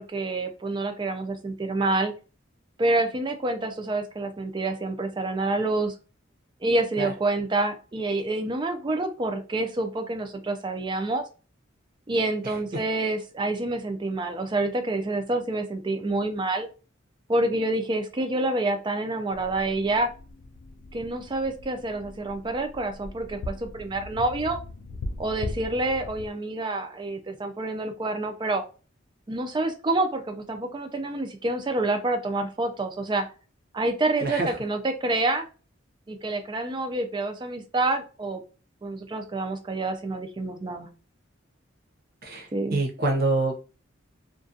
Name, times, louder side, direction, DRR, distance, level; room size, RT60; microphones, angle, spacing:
voice 1, 0.0-2.1 2.8-5.9 6.6-11.2 12.1-16.7 17.3-20.1 20.9-24.6 25.2-28.6 29.3-33.3 33.7-35.5 36.1-38.4 38.8-40.9 42.5-42.8, right 2 dB, 25° right, 6 dB, 0.4 m, -27 dB
voice 2, 12.4-12.8 34.2-34.6 42.2-43.5, right 2 dB, 50° right, 2 dB, 0.7 m, -27 dB
sound 1, 19.3-26.3, left 2 dB, 55° left, 0.3 m, -39 dB
2.4 x 2.2 x 2.6 m, 0.34 s
head